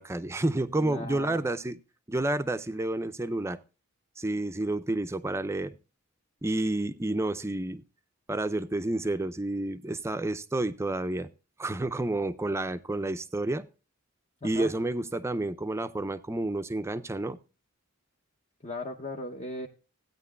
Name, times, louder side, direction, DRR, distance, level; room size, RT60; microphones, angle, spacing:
voice 1, 0.0-1.8 2.1-3.6 4.2-5.8 6.4-7.8 8.3-11.3 11.6-13.7 14.4-17.4, right 2 dB, 15° right, 12 dB, 0.4 m, -30 dB
voice 2, 0.7-1.4 14.4-14.7 18.6-19.7, left 2 dB, 35° left, 1 dB, 0.7 m, -37 dB
16.0 x 9.1 x 2.3 m, 0.31 s
head